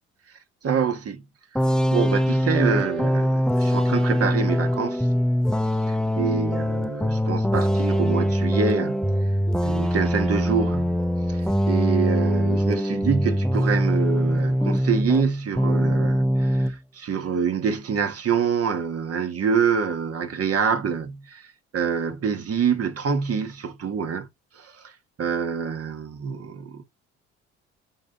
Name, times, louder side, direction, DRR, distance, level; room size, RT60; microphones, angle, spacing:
voice 1, 0.6-1.2 1.9-5.1 6.2-9.1 9.6-11.0 11.3-21.5 21.7-24.3 24.6-24.9 25.2-26.8, right 6 dB, 55° right, 1.7 m, -26 dB
sound 1, 1.5-15.3 15.6-16.7, equal, ahead, 0.8 m, -22 dB
8.6 x 4.1 x 4.0 m
supercardioid pair, 65°, 29 cm